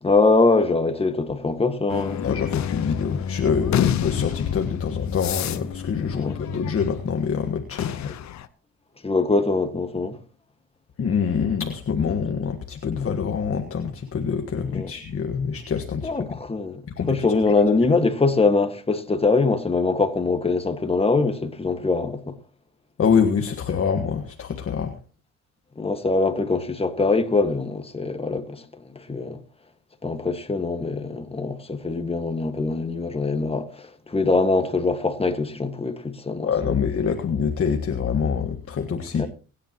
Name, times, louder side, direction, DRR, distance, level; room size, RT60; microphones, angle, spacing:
voice 1, 0.0-2.2 6.1-6.4 9.0-10.2 14.7-14.9 16.0-16.8 17.1-22.3 25.7-28.6 28.9-29.4 30.0-36.5 39.2-39.3, left 3 dB, 20° left, 1.7 m, -23 dB
sound 1, 1.9-7.3 7.7-8.5, left 9 dB, 65° left, 0.9 m, -29 dB
voice 2, 2.2-8.1 11.0-16.1 17.0-17.3 23.0-24.9 36.4-39.3, left 6 dB, 50° left, 1.5 m, -25 dB
22.5 x 10.5 x 3.0 m
cardioid pair, 90°, 30 cm